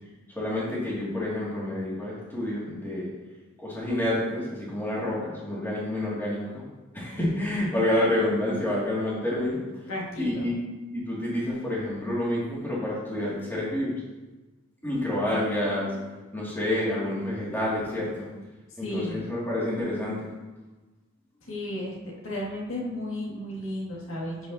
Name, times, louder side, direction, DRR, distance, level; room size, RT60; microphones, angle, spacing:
voice 1, 0.4-3.1 3.6-6.6 6.9-9.6 10.2-10.6 10.9-13.9 14.8-16.0 16.3-18.3 18.8-20.3, left 1 dB, 10° left, -7 dB, 2.3 m, -28 dB
voice 2, 9.9-10.5 18.8-19.3 21.4-22.0 22.2-24.5, left 1 dB, 70° left, -4 dB, 2.0 m, -33 dB
10.5 x 5.3 x 2.8 m, 1.2 s
head